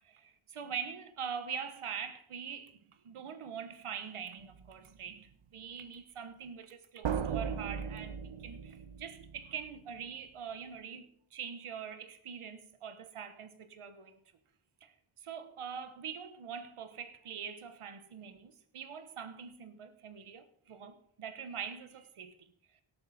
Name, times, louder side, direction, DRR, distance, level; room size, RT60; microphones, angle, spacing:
voice 1, 0.0-14.2 14.8-14.9 15.2-22.5, right 7 dB, 90° right, 1.2 m, -43 dB
sound 1, 4.4-4.7 7.0-9.7, right 7 dB, 65° right, 0.8 m, -37 dB
17.5 x 8.6 x 4.1 m
cardioid pair, 60°, 49 cm